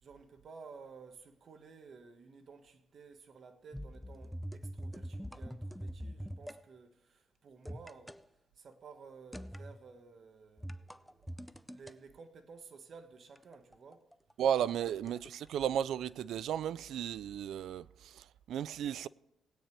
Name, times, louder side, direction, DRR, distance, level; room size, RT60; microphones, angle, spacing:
voice 1, 0.0-8.2 8.5-11.3 11.7-14.0, right 5 dB, 50° right, 1.4 m, -54 dB
sound 1, 3.7-6.6 7.7-8.2 9.3-9.8 10.6-11.9 13.4-15.3 15.6-15.7, equal, ahead, 0.5 m, -44 dB
voice 2, 14.4-19.1, right 9 dB, 75° right, 0.4 m, -34 dB
19.5 x 8.9 x 3.3 m
cardioid pair, 90°, 0 cm